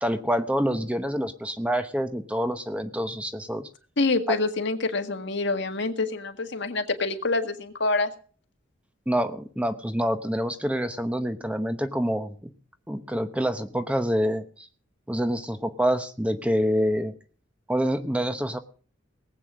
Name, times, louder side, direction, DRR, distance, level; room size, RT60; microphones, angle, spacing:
voice 1, 0.0-3.7 4.3-4.4 9.1-12.3 12.9-14.7 15.1-17.1 17.7-18.6, equal, 5° right, 8 dB, 0.9 m, -26 dB
voice 2, 4.0-8.1, left 3 dB, 65° left, 6 dB, 1.8 m, -26 dB
19.0 x 8.4 x 6.2 m, 0.42 s
head